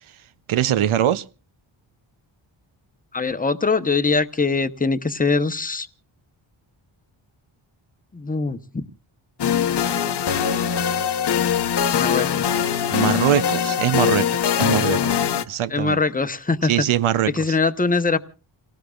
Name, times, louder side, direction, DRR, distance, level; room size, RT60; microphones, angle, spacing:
voice 1, 0.5-1.2 12.9-15.2 15.4-16.0 16.7-17.3, right 11 dB, 85° right, 0.7 m, -22 dB
voice 2, 3.1-5.9 8.1-8.8 11.9-12.5 15.7-16.7 17.3-18.2, left 4 dB, 15° left, 0.8 m, -22 dB
sound 1, 9.4-15.4, left 8 dB, 55° left, 0.9 m, -22 dB
29.5 x 18.0 x 2.4 m
cardioid pair, 85°, 48 cm